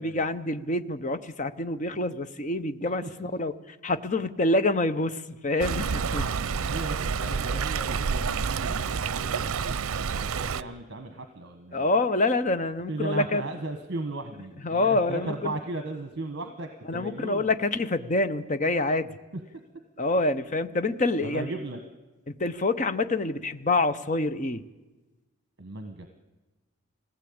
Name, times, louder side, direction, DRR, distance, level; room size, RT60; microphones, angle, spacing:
voice 1, 0.0-3.5 3.8-6.3 11.7-13.4 14.6-15.5 16.9-19.1 20.0-21.5 22.4-24.6, left 2 dB, 35° left, 11 dB, 0.7 m, -26 dB
Stream, 5.6-10.6, right 5 dB, 85° right, 0.6 m, -29 dB
voice 2, 6.6-11.9 12.9-17.5 19.3-19.4 21.2-21.8 25.6-26.1, right 2 dB, 50° right, 6 dB, 1.3 m, -36 dB
20.0 x 16.0 x 8.7 m, 1.2 s
head